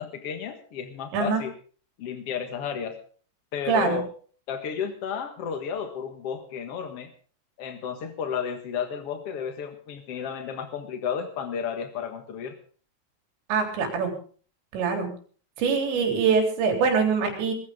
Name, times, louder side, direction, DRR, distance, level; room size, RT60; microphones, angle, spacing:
voice 1, 0.0-1.5 2.0-3.0 3.5-4.1 4.5-7.1 7.6-12.6, left 7 dB, 65° left, 7 dB, 1.5 m, -32 dB
voice 2, 3.7-4.0 13.5-14.1 14.7-15.1 15.6-17.5, right 5 dB, 85° right, 3 dB, 6.0 m, -23 dB
20.5 x 15.5 x 3.7 m, 0.42 s
omnidirectional pair, 5.0 m